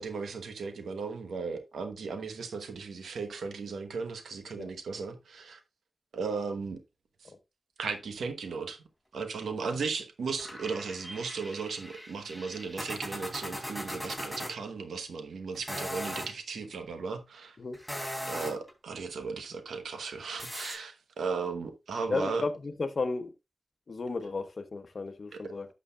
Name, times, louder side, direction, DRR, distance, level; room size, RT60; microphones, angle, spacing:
voice 1, 0.0-5.6 6.1-6.8 7.8-8.8 9.1-17.6 18.3-22.5 25.3-25.4, right 4 dB, 90° right, 1.0 m, -36 dB
sound 1, 10.4-14.5 15.5-16.3 17.7-18.7 20.4-20.8, equal, 5° right, 3.3 m, -39 dB
voice 2, 22.1-23.3 23.9-25.7, left 3 dB, 60° left, 0.9 m, -33 dB
11.5 x 6.3 x 2.3 m
cardioid pair, 50°, 0 cm